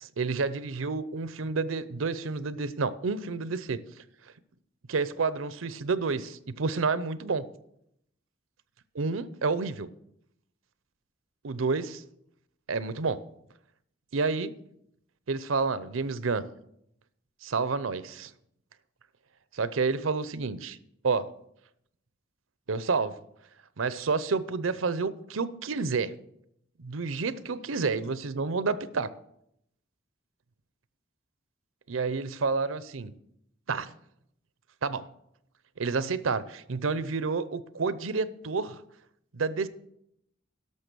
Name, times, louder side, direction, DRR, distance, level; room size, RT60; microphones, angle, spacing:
voice 1, 0.0-3.8 4.9-7.5 9.0-9.9 11.4-12.0 12.7-13.2 14.1-14.5 15.3-16.5 17.4-18.3 19.5-20.8 21.0-21.3 22.7-23.2 23.8-26.1 26.8-29.1 31.9-33.1 33.7-33.9 34.8-35.1 35.8-38.8 39.3-39.7, right 4 dB, 85° right, 0.7 m, -29 dB
12.0 x 6.6 x 6.2 m
head